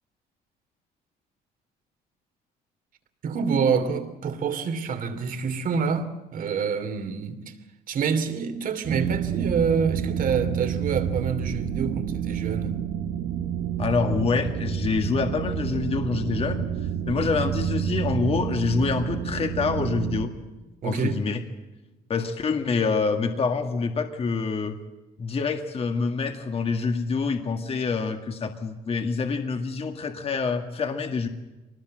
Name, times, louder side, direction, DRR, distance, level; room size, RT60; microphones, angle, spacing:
voice 1, 3.2-7.5 7.9-12.8 20.8-21.2, right 6 dB, 55° right, 2.9 m, -27 dB
sound 1, 8.8-20.3, right 8 dB, 80° right, 2.2 m, -29 dB
voice 2, 13.8-16.7 17.1-20.3 20.8-21.4 22.1-24.8 25.2-31.3, left 4 dB, 35° left, 1.9 m, -26 dB
24.0 x 20.0 x 7.7 m
cardioid pair, 110°, 17 cm